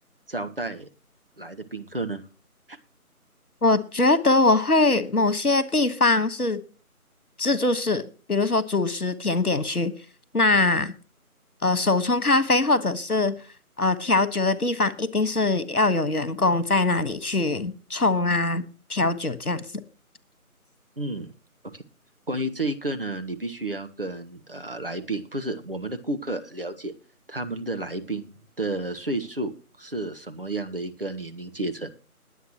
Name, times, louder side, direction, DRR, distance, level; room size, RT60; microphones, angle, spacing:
voice 1, 0.3-0.9 1.4-2.2 2.7-2.8 21.0-21.3 21.7-21.8 22.3-26.9 27.3-28.3 28.6-29.5 29.8-31.9, right 2 dB, 40° right, 1.2 m, -31 dB
voice 2, 3.6-6.6 7.4-8.0 8.3-9.9 10.3-10.9 11.6-13.3 13.8-18.6 18.9-19.6, left 2 dB, 75° left, 1.7 m, -22 dB
21.0 x 8.2 x 3.0 m
figure-of-eight pair, 165°, 45 cm